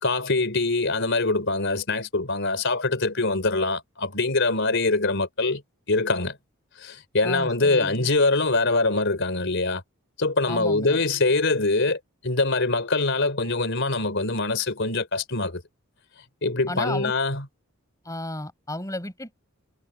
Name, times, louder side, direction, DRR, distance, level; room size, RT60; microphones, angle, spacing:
voice 1, 0.0-5.6 5.9-6.4 6.8-9.8 10.2-15.6 16.4-17.5, left 3 dB, 55° left, 4.2 m, -24 dB
voice 2, 7.2-8.1 10.5-11.0 16.7-17.1 18.1-19.3, left 1 dB, 15° left, 5.5 m, -33 dB
head